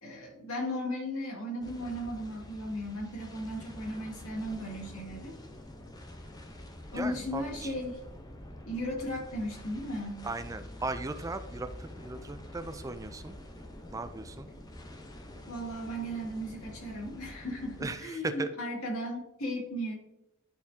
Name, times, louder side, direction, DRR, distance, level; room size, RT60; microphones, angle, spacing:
voice 1, 0.0-5.3 6.9-8.0 8.7-10.3 15.5-19.9, equal, 90° left, -1 dB, 2.3 m, -36 dB
sound 1, 1.6-17.9, left 1 dB, 20° left, 0.8 m, -47 dB
voice 2, 6.9-7.7 10.2-13.4 13.9-14.5 17.8-18.5, right 2 dB, 15° right, 9 dB, 0.4 m, -37 dB
11.5 x 4.3 x 2.8 m, 0.88 s
head